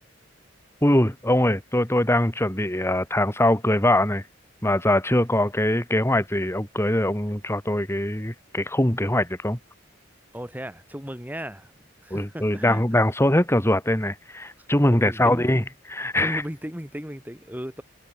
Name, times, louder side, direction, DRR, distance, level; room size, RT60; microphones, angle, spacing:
voice 1, 0.8-4.2 4.6-9.6 12.1-15.6 15.9-16.4, left 1 dB, 15° left, 3.0 m, -22 dB
voice 2, 10.3-12.8 14.6-15.6 16.2-17.8, equal, 10° right, 4.7 m, -36 dB
head